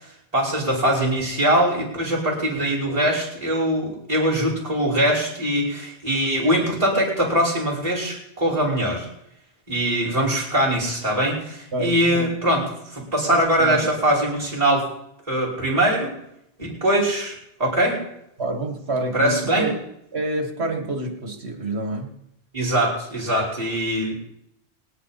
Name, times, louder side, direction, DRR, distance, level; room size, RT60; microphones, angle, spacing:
voice 1, 0.3-9.1 9.7-14.9 15.3-16.2 16.6-18.0 19.1-19.7 22.5-24.1, right 1 dB, 35° right, -5 dB, 5.5 m, -22 dB
voice 2, 11.7-12.3 13.3-13.9 18.4-19.8 20.1-22.2, right 2 dB, 75° right, 4 dB, 2.2 m, -28 dB
24.0 x 10.0 x 4.3 m, 0.79 s
omnidirectional pair, 1.1 m